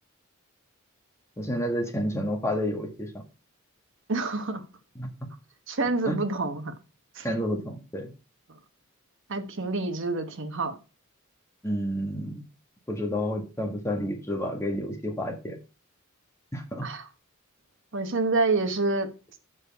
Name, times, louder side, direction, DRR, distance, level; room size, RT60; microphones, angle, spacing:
voice 1, 1.4-3.2 4.9-5.1 6.0-6.2 7.2-8.1 11.6-12.4 12.9-15.6 16.5-16.9, equal, 15° left, 1.5 m, -30 dB
voice 2, 4.1-4.6 5.7-6.7 7.1-7.3 9.3-10.7 16.8-17.0 17.9-19.1, right 3 dB, 60° right, 1.1 m, -27 dB
7.4 x 6.5 x 4.7 m
head